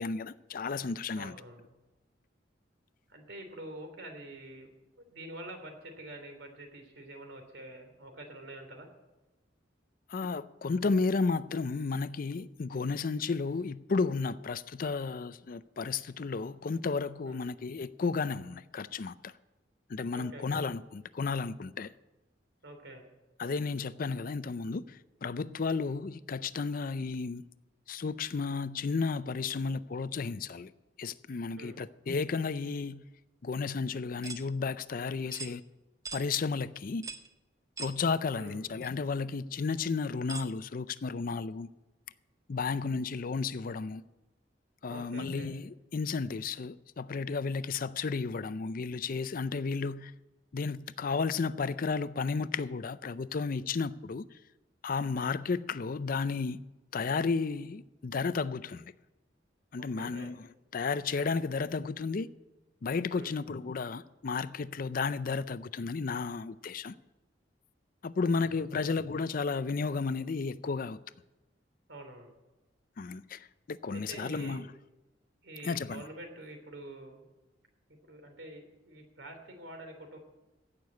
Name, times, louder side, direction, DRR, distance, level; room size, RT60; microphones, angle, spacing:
voice 1, 0.0-1.4 10.1-19.3 19.9-21.9 23.4-27.4 27.9-30.7 31.0-33.0 33.4-35.6 36.1-37.0 37.8-41.7 42.5-44.0 44.8-50.1 50.5-54.2 54.8-56.6 56.9-58.9 59.7-60.5 60.7-62.3 62.8-66.9 68.0-71.0 73.0-74.7 75.6-76.0, left 4 dB, 50° left, 0.5 m, -33 dB
voice 2, 1.1-1.7 3.1-4.7 5.0-8.9 17.3-17.4 20.1-20.6 22.6-23.0 31.6-31.8 38.3-38.6 44.9-45.5 59.8-60.3 63.1-63.4 68.2-68.4 68.7-69.0 71.9-72.3 73.9-74.7 75.4-77.3 77.9-80.2, right 1 dB, 75° right, 3.0 m, -47 dB
sound 1, 34.2-34.5 35.3-35.5 36.1-36.3 37.0-37.3 37.8-38.0 38.8-38.9 40.3-40.5, right 4 dB, 20° right, 0.7 m, -41 dB
15.5 x 6.8 x 8.4 m
head